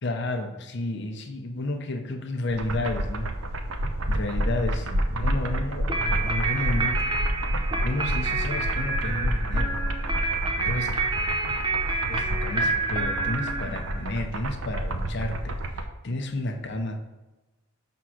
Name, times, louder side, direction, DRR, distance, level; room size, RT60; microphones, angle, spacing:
voice 1, 0.0-3.3 4.1-7.0 7.6-9.8 10.6-11.0 12.1-17.0, left 2 dB, 50° left, 5 dB, 0.7 m, -31 dB
sound 1, 2.5-15.8, right 1 dB, 75° right, 0.7 m, -29 dB
sound 2, 5.9-14.2, right 3 dB, 20° right, 0.7 m, -29 dB
6.1 x 3.7 x 5.9 m, 1.1 s
head